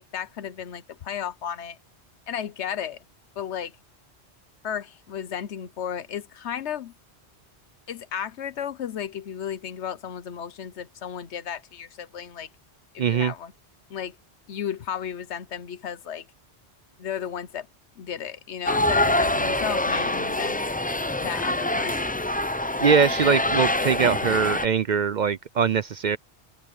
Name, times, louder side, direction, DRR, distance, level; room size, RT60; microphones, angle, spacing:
voice 1, 0.0-1.8 2.3-3.0 3.4-3.7 4.6-6.9 7.9-12.5 12.9-13.5 13.9-14.2 14.5-16.3 17.0-17.7 18.0-20.6 21.2-22.2, left 8 dB, 80° left, 1.2 m, -34 dB
voice 2, 13.0-13.3 22.8-26.2, right 6 dB, 55° right, 0.6 m, -22 dB
sound 1, 18.7-24.7, left 1 dB, 10° left, 0.4 m, -25 dB
omnidirectional pair, 1.1 m